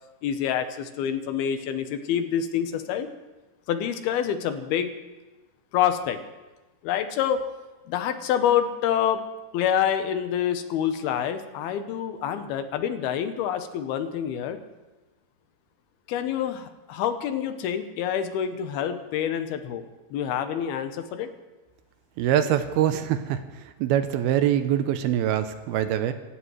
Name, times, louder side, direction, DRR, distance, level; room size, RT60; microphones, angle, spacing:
voice 1, 0.2-3.1 3.7-4.9 5.7-6.2 6.8-7.5 7.9-9.2 9.5-14.6 16.1-21.3, left 9 dB, 75° left, 8 dB, 2.6 m, -27 dB
voice 2, 22.2-26.1, right 11 dB, 80° right, 9 dB, 2.4 m, -24 dB
26.5 x 15.5 x 3.2 m, 1.1 s
omnidirectional pair, 5.0 m